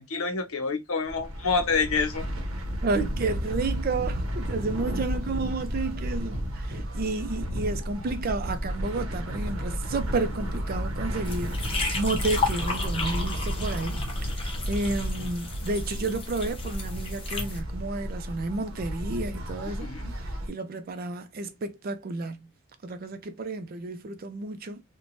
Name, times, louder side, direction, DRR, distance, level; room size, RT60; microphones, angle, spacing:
voice 1, 0.0-2.2 19.8-20.1, left 4 dB, 80° left, 0.7 m, -27 dB
sound 1, 1.0-20.5, equal, 80° right, 0.7 m, -32 dB
voice 2, 2.8-22.5 22.8-24.8, right 3 dB, 45° right, 0.4 m, -31 dB
sound 2, 11.2-17.6, left 3 dB, 25° left, 0.7 m, -33 dB
3.0 x 2.1 x 2.5 m
head